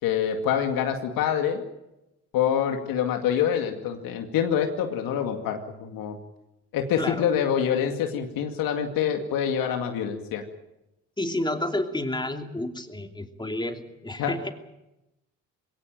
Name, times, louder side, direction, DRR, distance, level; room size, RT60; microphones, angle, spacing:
voice 1, 0.0-1.6 2.3-6.2 6.7-10.4 14.2-14.4, left 8 dB, 75° left, 5 dB, 2.3 m, -26 dB
voice 2, 7.0-7.3 11.2-14.5, left 1 dB, 15° left, 5 dB, 2.9 m, -30 dB
22.0 x 17.5 x 8.9 m, 0.93 s
supercardioid pair, 75°, 34 cm